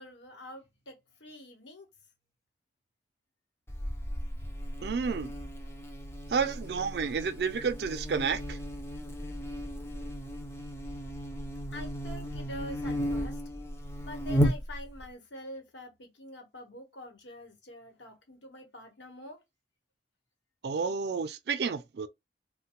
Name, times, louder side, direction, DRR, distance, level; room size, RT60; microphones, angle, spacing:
voice 1, 0.0-1.9 11.7-13.4 14.0-19.4, left 1 dB, 85° left, 1.0 m, -46 dB
Buzz, 3.7-15.1, equal, 15° left, 0.4 m, -35 dB
voice 2, 4.8-5.3 6.3-8.6 20.6-22.1, right 5 dB, 60° right, 0.4 m, -30 dB
3.0 x 2.1 x 2.9 m
head